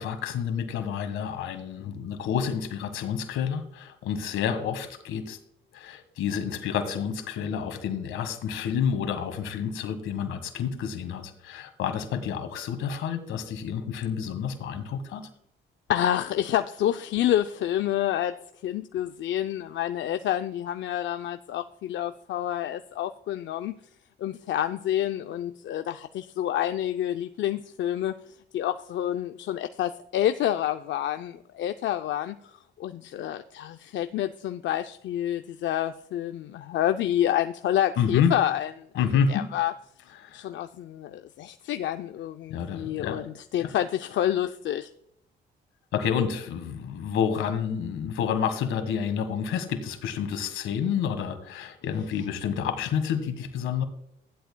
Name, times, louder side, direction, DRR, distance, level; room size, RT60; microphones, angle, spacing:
voice 1, 0.0-5.4 5.7-15.3 38.0-38.3 39.0-39.4 40.2-40.4 42.5-43.3 43.6-43.7 45.9-53.8, left 7 dB, 85° left, 8 dB, 1.6 m, -29 dB
voice 2, 15.9-18.4 18.6-23.8 24.2-39.7 40.3-44.9, left 11 dB, 70° left, 8 dB, 0.5 m, -28 dB
15.5 x 11.0 x 2.2 m, 0.72 s
cardioid pair, 90°, 20 cm